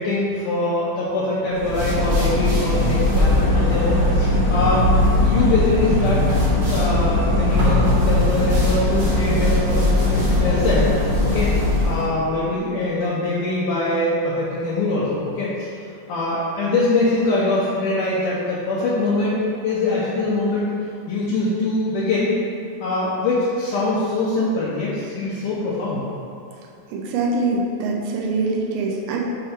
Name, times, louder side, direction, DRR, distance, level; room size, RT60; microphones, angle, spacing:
voice 1, 0.0-4.8 5.2-6.3 6.6-10.9 11.2-15.7 16.1-19.4 19.6-20.7 21.1-22.3 22.8-26.0, left 2 dB, 75° left, -8 dB, 2.1 m, -23 dB
sound 1, 1.5-12.1, left 1 dB, 45° right, 1.3 m, -19 dB
voice 2, 26.9-29.2, right 3 dB, 90° right, -2 dB, 2.6 m, -23 dB
6.7 x 3.3 x 5.7 m, 2.6 s
omnidirectional pair, 4.2 m